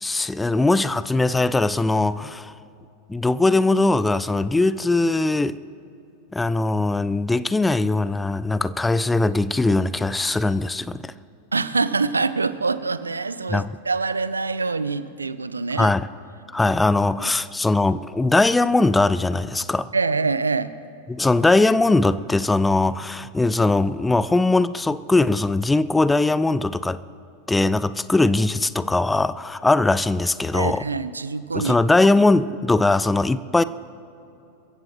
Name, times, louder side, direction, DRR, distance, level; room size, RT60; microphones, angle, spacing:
voice 1, 0.0-2.5 3.1-5.6 6.3-11.1 13.5-13.7 15.8-16.1 16.5-19.9 21.1-27.0 27.5-30.8 31.5-33.6, left 2 dB, 10° left, 16 dB, 0.4 m, -20 dB
voice 2, 11.5-15.9 17.2-17.3 19.9-20.7 30.5-31.8, right 4 dB, 75° right, 15 dB, 0.5 m, -25 dB
27.0 x 15.0 x 3.0 m, 2.7 s
figure-of-eight pair, 90°, 0 cm